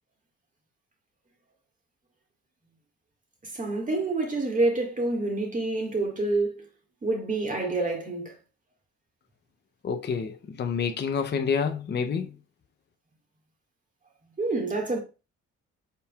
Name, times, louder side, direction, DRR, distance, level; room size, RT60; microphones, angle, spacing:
voice 1, 3.4-6.7 7.0-8.3 14.4-15.0, right 2 dB, 25° right, 1.8 m, -27 dB
voice 2, 9.8-12.3, left 6 dB, 35° left, 0.6 m, -28 dB
5.3 x 4.3 x 2.3 m
cardioid pair, 90°, 30 cm